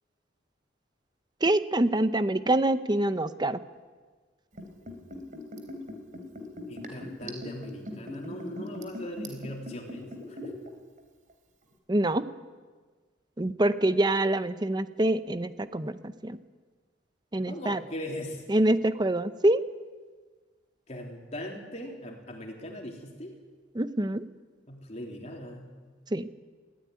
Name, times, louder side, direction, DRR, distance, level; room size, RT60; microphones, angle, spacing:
voice 1, 1.4-3.6 11.9-12.3 13.4-16.4 17.3-17.8 18.5-19.6 23.7-24.2 26.1-26.3, right 1 dB, 25° right, 12 dB, 0.7 m, -25 dB
Liquid, 4.5-10.7 11.0-11.1, left 1 dB, 45° right, 3.6 m, -39 dB
voice 2, 6.7-10.5 17.5-18.4 20.9-23.4 24.7-25.7, left 1 dB, 40° left, 1 dB, 3.6 m, -40 dB
22.0 x 16.0 x 9.5 m, 1.4 s
head